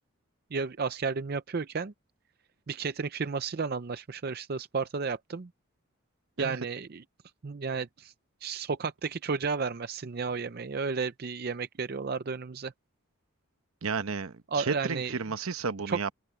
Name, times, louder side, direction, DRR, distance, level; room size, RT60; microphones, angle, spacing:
voice 1, 0.5-1.9 2.7-5.5 6.4-7.0 7.4-8.1 8.4-12.7 14.5-15.1 15.9-16.1, right 5 dB, 45° right, 0.5 m, -32 dB
voice 2, 13.8-16.1, right 5 dB, 80° right, 0.9 m, -32 dB
open air
head